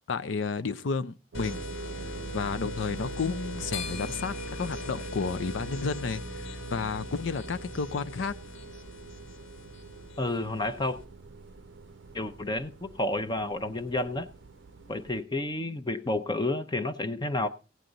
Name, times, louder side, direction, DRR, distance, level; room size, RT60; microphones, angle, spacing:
voice 1, 0.1-1.6 2.0-8.3, left 4 dB, 90° left, 0.5 m, -32 dB
sound 1, 1.3-11.0, equal, 75° left, 1.3 m, -40 dB
sound 2, 1.3-15.2, right 4 dB, 80° right, 0.5 m, -46 dB
sound 3, 2.7-15.2, left 6 dB, 55° left, 1.2 m, -50 dB
voice 2, 10.2-11.0 12.1-14.3 14.9-17.5, left 2 dB, 25° left, 0.6 m, -30 dB
16.0 x 9.2 x 3.9 m
head